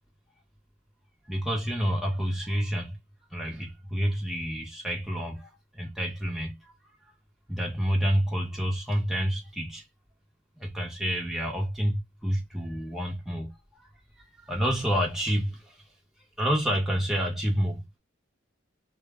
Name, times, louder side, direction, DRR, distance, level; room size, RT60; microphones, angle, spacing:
voice 1, 1.3-3.0 3.3-6.7 7.5-9.8 10.6-13.5 14.2-15.8 16.4-17.8, equal, ahead, 0.7 m, -29 dB
2.0 x 2.0 x 3.4 m
head